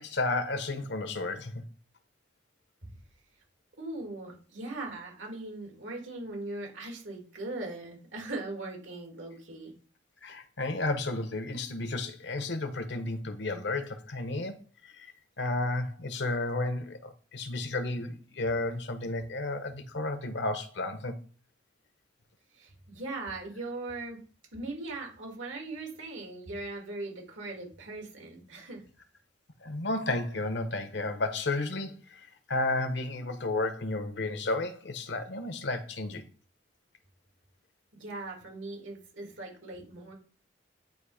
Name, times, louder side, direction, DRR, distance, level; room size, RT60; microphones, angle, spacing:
voice 1, 0.0-1.6 10.2-14.6 14.8-15.1 15.4-21.1 29.6-36.2, left 2 dB, 60° left, 0.9 m, -32 dB
voice 2, 3.8-9.7 22.6-24.2 24.5-28.8 37.9-40.1, right 2 dB, 80° right, 2.5 m, -39 dB
9.2 x 3.1 x 4.9 m
head